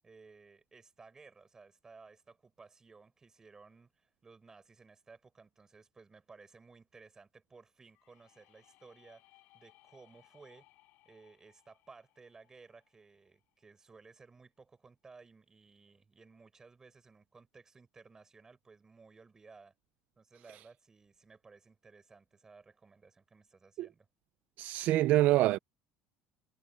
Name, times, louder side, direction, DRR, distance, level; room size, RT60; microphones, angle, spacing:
voice 1, 0.0-9.2 9.5-10.7 11.0-19.7 20.2-24.1, right 4 dB, 15° right, 6.8 m, -58 dB
sound 1, 7.9-13.7, left 18 dB, 60° left, 6.7 m, -66 dB
voice 2, 24.6-25.6, right 16 dB, 50° right, 0.4 m, -26 dB
cardioid pair, 160°, 4 cm